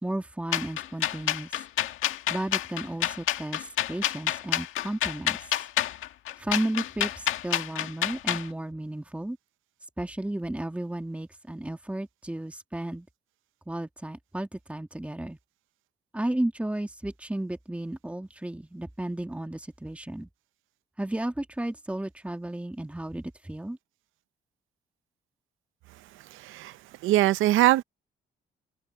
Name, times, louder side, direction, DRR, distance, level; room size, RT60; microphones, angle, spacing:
voice 1, 0.0-1.6 2.3-5.5 6.4-9.4 10.0-13.1 13.7-15.4 16.1-20.3 21.0-23.8, right 1 dB, 5° right, 2.0 m, -33 dB
sound 1, 0.5-8.5, left 12 dB, 85° left, 1.9 m, -28 dB
voice 2, 26.3-26.7 27.0-27.8, right 15 dB, 85° right, 0.7 m, -22 dB
cardioid pair, 90°, 20 cm